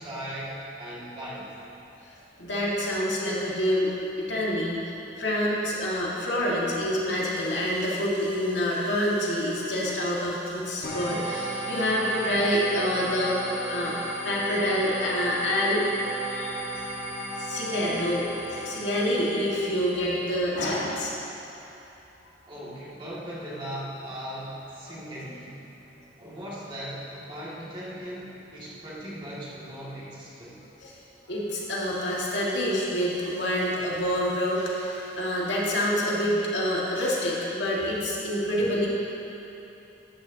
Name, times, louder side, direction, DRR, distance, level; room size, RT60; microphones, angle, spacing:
voice 1, 0.0-1.5 22.5-25.7 26.2-30.6, equal, 30° right, -8 dB, 2.1 m, -38 dB
voice 2, 2.1-13.4 13.7-13.9 14.2-15.8 16.3-16.6 17.4-21.1 30.8-31.0 31.3-38.9, equal, 90° left, -5 dB, 1.9 m, -27 dB
sound 1, 10.8-20.2, right 1 dB, 60° left, 1.3 m, -34 dB
13.0 x 9.6 x 2.8 m, 3.0 s
head